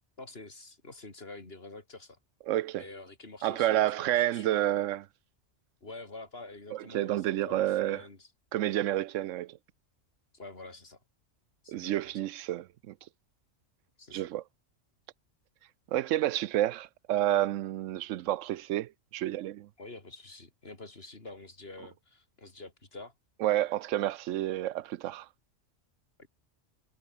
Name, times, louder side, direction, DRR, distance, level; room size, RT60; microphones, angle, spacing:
voice 1, 0.2-2.2 2.7-4.6 5.8-8.3 10.3-11.0 11.6-12.2 14.0-14.3 19.8-23.1 26.2-26.3, left 2 dB, 55° left, 3.6 m, -47 dB
voice 2, 2.5-2.8 3.4-5.0 6.7-8.0 8.5-9.6 11.7-12.9 14.1-14.4 15.9-19.7 23.4-25.3, right 13 dB, 85° right, 1.0 m, -29 dB
omnidirectional pair, 1.3 m